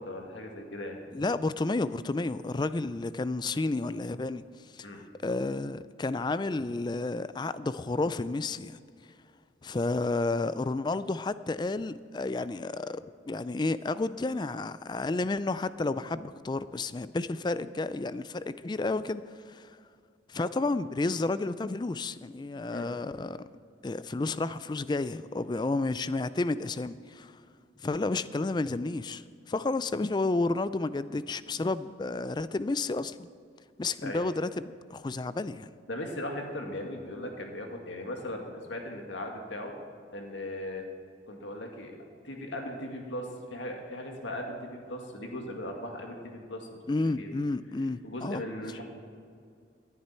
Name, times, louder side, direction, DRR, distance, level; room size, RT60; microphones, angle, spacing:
voice 1, 0.0-1.0 4.8-5.0 22.7-22.9 34.0-34.2 35.9-39.7 40.1-40.9 41.3-42.0 42.2-47.3 48.0-48.8, left 1 dB, 90° left, 2.0 m, -38 dB
voice 2, 1.1-4.4 4.7-4.9 5.2-8.8 9.6-19.7 20.3-23.4 23.8-27.3 27.8-33.3 33.8-35.7 46.9-48.4, left 3 dB, 25° left, 0.3 m, -31 dB
18.5 x 11.0 x 4.4 m
head